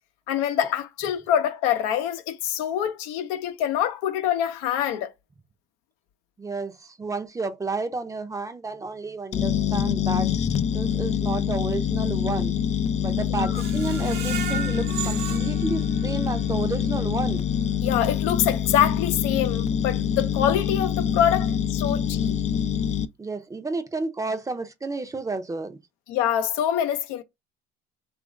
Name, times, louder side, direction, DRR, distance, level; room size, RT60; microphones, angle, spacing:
voice 1, 0.3-5.1 13.4-13.6 17.8-22.4 26.1-27.2, left 10 dB, 75° left, 0.7 m, -25 dB
voice 2, 6.4-10.3 10.7-12.6 13.0-17.5 23.2-25.8, right 3 dB, 15° right, 0.6 m, -31 dB
sound 1, 9.3-23.0, left 8 dB, 35° left, 0.4 m, -25 dB
Screech, 13.5-16.5 17.0-17.1 17.5-17.6, right 9 dB, 55° right, 0.6 m, -35 dB
3.0 x 2.5 x 3.8 m
supercardioid pair, 85°, 20 cm